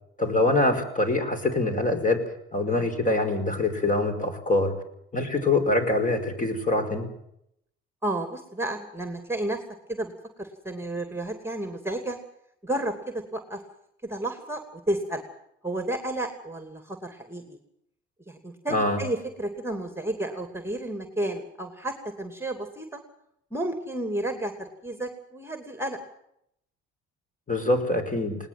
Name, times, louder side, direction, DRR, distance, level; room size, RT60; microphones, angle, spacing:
voice 1, 0.2-4.8 5.1-7.1 18.7-19.0 27.5-28.4, left 2 dB, 25° left, 7 dB, 5.2 m, -24 dB
voice 2, 8.0-9.6 9.9-10.1 10.4-12.2 12.6-13.6 14.0-15.2 15.6-17.6 18.3-23.0 23.5-26.0, right 1 dB, 10° right, 7 dB, 2.6 m, -32 dB
20.0 x 19.0 x 7.7 m, 0.76 s
hypercardioid pair, 60°, 31 cm